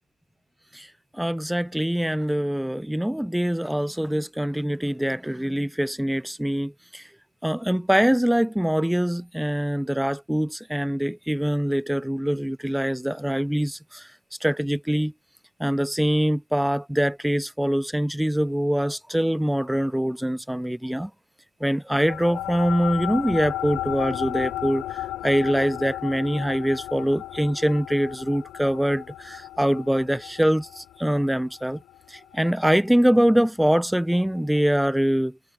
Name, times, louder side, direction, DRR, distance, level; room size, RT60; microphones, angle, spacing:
voice 1, 1.2-7.0 7.4-14.1 14.4-15.1 15.6-21.1 21.6-31.8 32.1-35.3, equal, 5° right, 0.5 m, -24 dB
sound 1, 21.9-32.7, left 14 dB, 85° left, 2.7 m, -34 dB
cardioid pair, 90°, 0 cm